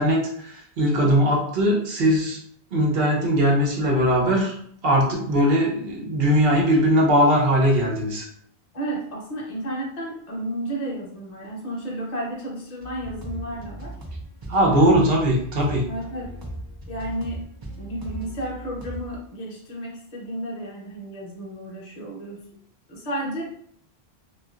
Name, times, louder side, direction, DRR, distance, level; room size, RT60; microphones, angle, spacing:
voice 1, 0.0-2.4 2.7-4.5 4.8-8.3 14.5-15.8, equal, 70° right, -2 dB, 0.9 m, -20 dB
voice 2, 8.7-13.9 14.7-15.0 15.9-16.3 16.9-17.5 17.8-22.4 22.9-23.4, right 1 dB, 40° left, -3 dB, 0.8 m, -32 dB
sound 1, 12.8-19.2, right 1 dB, 35° right, 0.4 m, -38 dB
2.7 x 2.5 x 2.3 m, 0.66 s
omnidirectional pair, 1.1 m